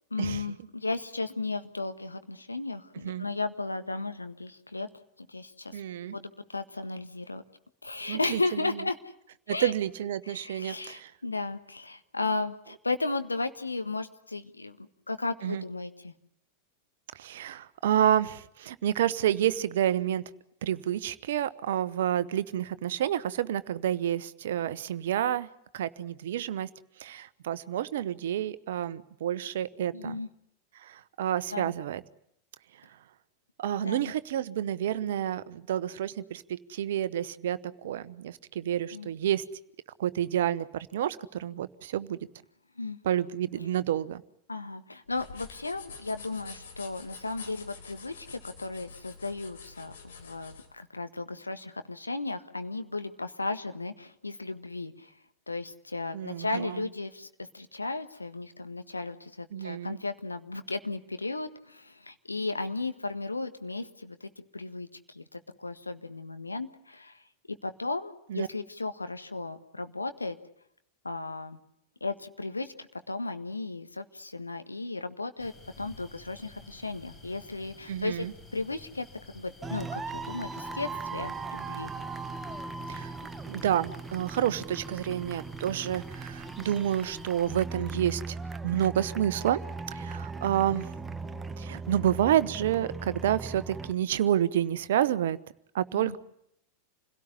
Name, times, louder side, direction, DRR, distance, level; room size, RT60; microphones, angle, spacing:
voice 1, 0.1-4.9 5.3-5.8 6.1-7.4 7.8-9.0 9.5-9.7 10.2-16.1 29.9-30.3 31.5-31.7 33.8-34.1 38.9-39.1 42.8-43.0 44.5-55.1 55.5-57.3 57.5-67.2 67.6-70.4 71.0-71.6 72.0-78.3 78.5-79.0 79.3-81.9 95.9-96.2, left 3 dB, 80° left, 9 dB, 1.5 m, -35 dB
voice 2, 5.7-6.2 8.1-8.7 9.5-11.1 15.4-15.6 17.1-20.2 20.6-25.5 25.7-26.7 27.0-30.2 30.7-32.0 33.6-39.4 40.0-42.2 43.0-44.2 56.1-56.8 59.5-60.0 68.3-68.5 77.9-78.3 82.9-83.1 83.5-88.4 88.6-89.6 89.9-90.9 91.6-95.4 95.7-96.2, right 11 dB, 60° right, 16 dB, 1.0 m, -29 dB
sound 1, 45.1-50.7, left 5 dB, 60° left, 3.7 m, -47 dB
sound 2, 75.4-87.6, left 2 dB, 20° left, 4.7 m, -52 dB
sound 3, 79.6-93.9, right 4 dB, 15° right, 1.1 m, -39 dB
27.5 x 17.5 x 9.8 m, 0.75 s
figure-of-eight pair, 90°, 0 cm